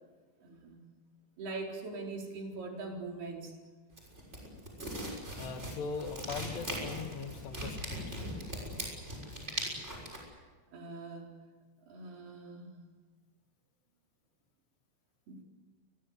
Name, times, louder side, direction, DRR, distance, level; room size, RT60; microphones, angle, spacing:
voice 1, 0.4-0.8 1.4-3.5 10.3-10.4 10.7-11.4 11.9-12.8 15.3-15.4, right 3 dB, 60° right, 0 dB, 5.9 m, -42 dB
sound 1, 3.9-10.2, equal, 15° right, 6.3 m, -40 dB
voice 2, 5.2-8.2, left 5 dB, 70° left, 6 dB, 3.7 m, -41 dB
28.5 x 22.0 x 8.0 m, 1.4 s
omnidirectional pair, 5.2 m